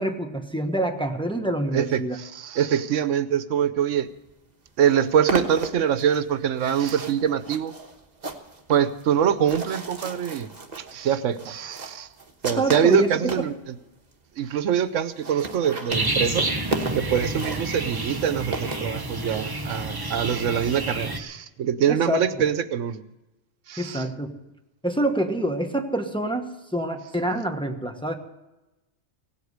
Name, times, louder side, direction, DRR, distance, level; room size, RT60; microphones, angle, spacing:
voice 1, 0.0-2.2 12.6-13.5 21.9-22.4 23.8-24.3 24.8-28.1, right 1 dB, 5° left, 4 dB, 1.1 m, -26 dB
voice 2, 1.7-4.1 4.8-7.7 8.7-10.5 10.8-12.1 12.4-13.8 14.4-16.5 16.9-23.0 23.7-24.0, right 8 dB, 80° right, 13 dB, 1.1 m, -24 dB
sound 1, 4.3-4.4 4.7-13.5 14.1-14.2 14.4-14.5 14.7-14.8 15.0-19.4, right 3 dB, 35° right, 1.4 m, -34 dB
sound 2, 15.9-21.2, right 2 dB, 20° right, 1.0 m, -29 dB
17.5 x 8.2 x 8.0 m, 1.0 s
omnidirectional pair, 1.3 m